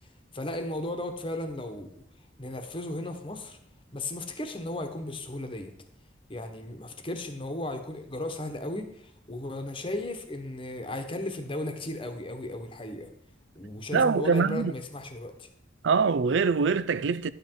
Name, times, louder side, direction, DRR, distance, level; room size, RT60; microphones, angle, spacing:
voice 1, 0.3-1.9 2.4-3.6 3.9-5.7 6.3-13.1 13.5-15.5, left 1 dB, 30° left, 1.1 m, -35 dB
voice 2, 13.9-14.7 15.8-17.3, right 5 dB, 75° right, 0.4 m, -24 dB
11.0 x 7.7 x 4.6 m
head